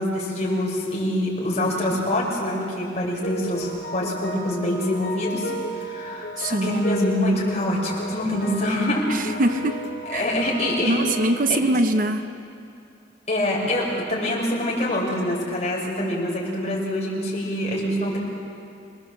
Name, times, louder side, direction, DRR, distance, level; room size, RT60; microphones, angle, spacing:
voice 1, 0.0-9.4 10.1-11.0 11.5-11.6 13.3-18.2, left 1 dB, 35° left, -3 dB, 6.1 m, -25 dB
sound 1, 3.2-11.3, right 1 dB, 65° left, 4.1 m, -34 dB
voice 2, 6.4-6.8 9.1-9.9 10.1-10.4 10.9-12.3, right 1 dB, 45° right, 8 dB, 0.8 m, -23 dB
27.0 x 21.0 x 7.6 m, 2.5 s
head